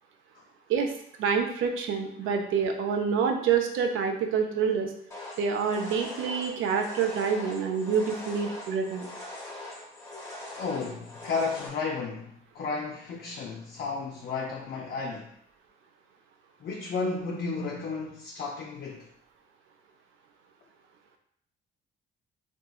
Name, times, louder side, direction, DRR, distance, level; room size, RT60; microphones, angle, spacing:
voice 1, 1.2-4.9 5.4-9.1, right 6 dB, 80° right, 4 dB, 0.4 m, -27 dB
sound 1, 5.1-11.7, left 2 dB, 15° left, 0.8 m, -42 dB
voice 2, 10.6-15.3 16.6-19.1, left 4 dB, 50° left, 0 dB, 0.4 m, -33 dB
2.8 x 2.2 x 2.2 m, 0.69 s
cardioid pair, 90°, 20 cm